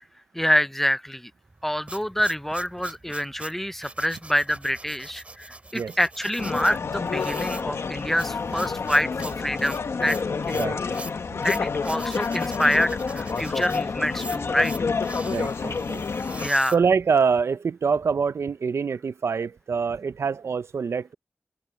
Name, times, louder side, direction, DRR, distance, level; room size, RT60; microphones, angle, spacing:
voice 1, 0.3-1.3 1.6-10.2 11.4-14.7 16.4-16.8, equal, 5° left, 0.5 m, -26 dB
sound 1, 1.5-17.4, right 2 dB, 30° right, 2.4 m, -42 dB
sound 2, 6.4-16.5, left 5 dB, 80° left, 1.1 m, -28 dB
voice 2, 15.2-16.0 16.7-21.1, right 5 dB, 85° right, 0.5 m, -25 dB
open air
wide cardioid pair, 110°, 4 cm